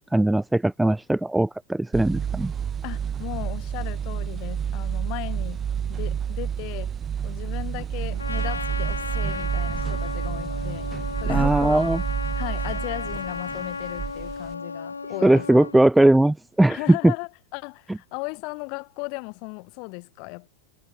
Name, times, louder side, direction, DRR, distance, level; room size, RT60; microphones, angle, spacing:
voice 1, 0.1-2.5 11.3-12.0 15.2-17.1, right 1 dB, 5° right, 0.5 m, -19 dB
sound 1, 1.9-14.5, right 8 dB, 25° right, 3.8 m, -29 dB
voice 2, 2.8-5.6 5.9-6.9 7.2-10.9 11.2-11.8 12.4-15.5 15.7-15.8 16.7-20.5, left 36 dB, 45° left, 5.5 m, -36 dB
Female speech woman speaking, 7.9-8.2 8.6-9.9 10.8-11.9 12.3-14.0, right 4 dB, 75° right, 7.4 m, -48 dB
Trumpet, 8.2-15.8, left 4 dB, 75° left, 1.0 m, -34 dB
figure-of-eight pair, 90°, 0 cm